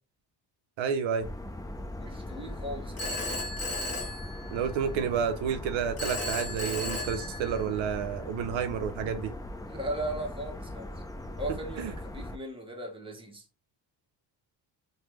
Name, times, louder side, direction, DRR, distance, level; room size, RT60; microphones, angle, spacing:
voice 1, 0.8-1.3 4.5-9.3 11.8-11.9, right 7 dB, 70° right, 0.6 m, -30 dB
sound 1, 1.2-12.4, left 1 dB, 10° left, 0.4 m, -40 dB
voice 2, 2.0-3.1 9.7-11.0 11.4-13.4, right 1 dB, 10° right, 1.0 m, -37 dB
Telephone, 3.0-4.9 6.0-7.9, left 2 dB, 30° left, 1.5 m, -35 dB
3.2 x 2.2 x 2.9 m
supercardioid pair, 70°, 48 cm